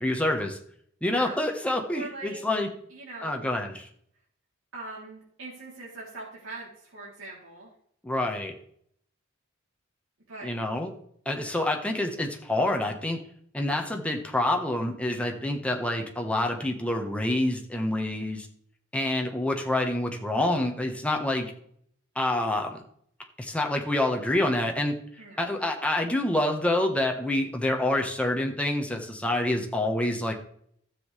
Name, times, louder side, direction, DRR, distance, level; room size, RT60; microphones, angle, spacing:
voice 1, 0.0-0.6 1.0-2.7 3.2-3.9 8.0-8.6 10.4-10.9 11.2-13.2 13.5-18.5 18.9-21.5 22.1-22.8 23.4-25.0 25.4-30.3, left 1 dB, 5° left, 2 dB, 1.3 m, -27 dB
voice 2, 1.9-2.4 2.9-3.5 4.7-7.7 10.3-10.5 11.3-11.5 25.2-25.7, right 3 dB, 80° right, -6 dB, 3.3 m, -42 dB
13.0 x 7.6 x 3.4 m, 0.66 s
head